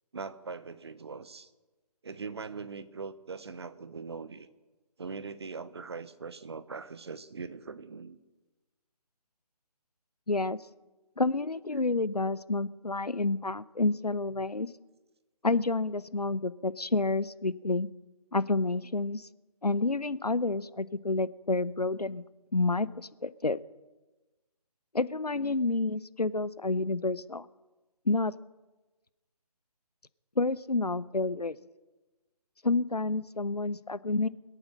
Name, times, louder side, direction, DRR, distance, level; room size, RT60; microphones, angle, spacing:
voice 1, 0.1-1.5 2.0-4.5 5.0-8.2, right 4 dB, 40° right, 14 dB, 0.9 m, -41 dB
voice 2, 10.3-10.6 11.2-14.7 15.4-17.9 18.3-19.3 19.6-22.2 22.5-23.6 24.9-27.5 28.1-28.3 30.4-31.6 32.6-34.3, left 3 dB, 85° left, 18 dB, 0.7 m, -29 dB
21.5 x 8.7 x 6.5 m, 1.2 s
figure-of-eight pair, 150°, 20 cm